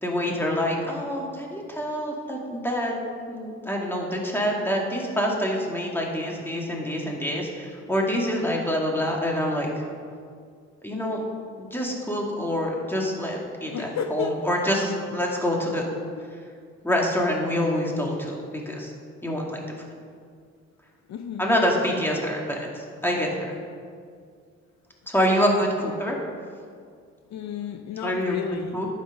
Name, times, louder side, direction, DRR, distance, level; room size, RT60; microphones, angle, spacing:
voice 1, 0.0-3.0 3.3-9.7 10.8-11.2 11.6-15.8 16.8-18.9 19.2-19.6 21.4-23.6 25.1-26.2 28.0-28.4 28.7-28.9, equal, 5° left, -1 dB, 2.4 m, -26 dB
voice 2, 13.7-14.4 16.2-16.3 21.1-21.5 27.3-28.8, left 7 dB, 65° left, 7 dB, 0.7 m, -32 dB
11.0 x 8.6 x 5.3 m, 2.1 s
cardioid pair, 90°, 30 cm